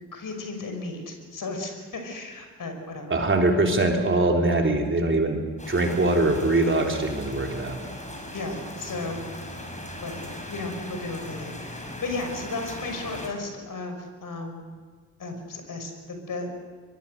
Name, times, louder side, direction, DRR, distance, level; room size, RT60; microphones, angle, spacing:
voice 1, 0.1-3.2 8.3-9.3 10.0-14.6 15.2-16.5, left 3 dB, 45° left, 5 dB, 5.9 m, -34 dB
voice 2, 3.1-5.4 5.7-7.8, right 2 dB, 25° right, 2 dB, 3.7 m, -22 dB
sound 1, 5.6-13.3, left 1 dB, 15° left, 6.0 m, -38 dB
23.0 x 23.0 x 6.7 m, 1.5 s
hypercardioid pair, 50°, 45 cm